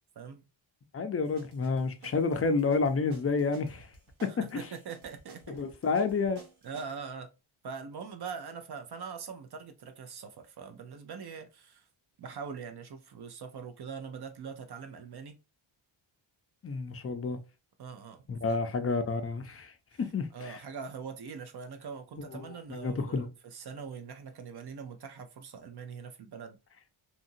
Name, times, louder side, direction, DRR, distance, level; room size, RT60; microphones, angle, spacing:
voice 1, 0.9-3.9 4.2-4.6 5.5-6.4 16.6-17.4 18.3-19.7 20.0-20.6 22.3-23.3, left 4 dB, 30° left, 0.4 m, -30 dB
sound 1, 1.2-7.0, right 4 dB, 70° right, 1.1 m, -54 dB
voice 2, 4.4-5.6 6.6-7.3 7.6-11.8 12.2-15.4 17.8-18.6 19.9-20.0 20.3-26.6, right 6 dB, 50° right, 0.7 m, -42 dB
2.8 x 2.6 x 2.6 m
wide cardioid pair, 115°, 49 cm